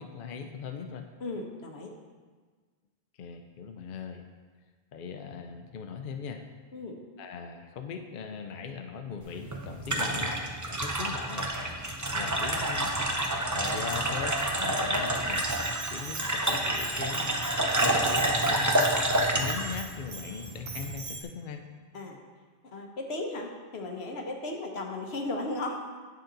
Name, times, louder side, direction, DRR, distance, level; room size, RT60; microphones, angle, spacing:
voice 1, 0.0-1.1 3.2-4.2 4.9-6.4 7.2-10.3 10.7-11.5 12.1-15.5 15.9-17.4 17.8-18.7 19.3-21.6, left 6 dB, 60° left, 5 dB, 0.7 m, -40 dB
voice 2, 1.2-1.9 6.7-7.0 17.8-18.0 21.9-22.2 22.6-25.8, left 2 dB, 90° left, 2 dB, 1.2 m, -36 dB
sound 1, 9.2-20.9, right 1 dB, 20° right, 0.6 m, -28 dB
Bell, 15.3-21.2, right 4 dB, 60° right, 0.9 m, -42 dB
9.2 x 5.7 x 3.9 m, 1.5 s
omnidirectional pair, 1.0 m